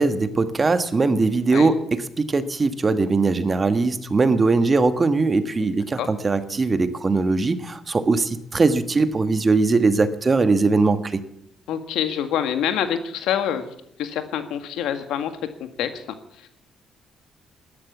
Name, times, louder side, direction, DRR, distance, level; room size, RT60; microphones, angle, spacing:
voice 1, 0.0-11.2, right 3 dB, 30° right, 11 dB, 1.4 m, -20 dB
voice 2, 11.7-13.7 14.0-15.3 15.6-16.0 16.4-16.5, left 9 dB, 90° left, 9 dB, 1.8 m, -26 dB
13.5 x 12.0 x 8.4 m, 0.73 s
cardioid pair, 90°, 0 cm